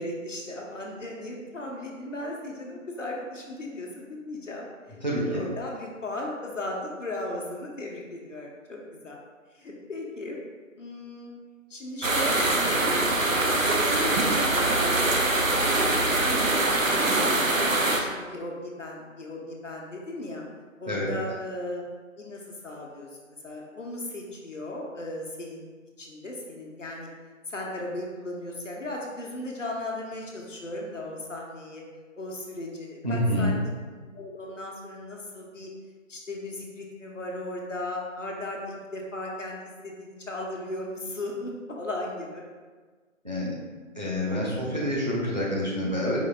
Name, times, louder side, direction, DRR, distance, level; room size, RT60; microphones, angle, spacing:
voice 1, 0.0-4.7 5.2-9.2 9.5-10.4 10.8-11.3 11.7-13.9 14.2-15.0 15.3-16.6 17.0-20.4 20.8-21.8 22.2-25.7 26.0-27.1 27.5-31.8 32.2-33.5 34.1-35.7 36.1-42.4, left 1 dB, 65° left, -1 dB, 1.0 m, -37 dB
sound 1, 12.0-18.0, right 2 dB, 75° right, 0.7 m, -23 dB
voice 2, 33.0-33.6 43.2-43.5 44.0-46.2, left 1 dB, 35° right, -6 dB, 0.7 m, -27 dB
4.8 x 2.8 x 3.3 m, 1.4 s
figure-of-eight pair, 170°, 40 cm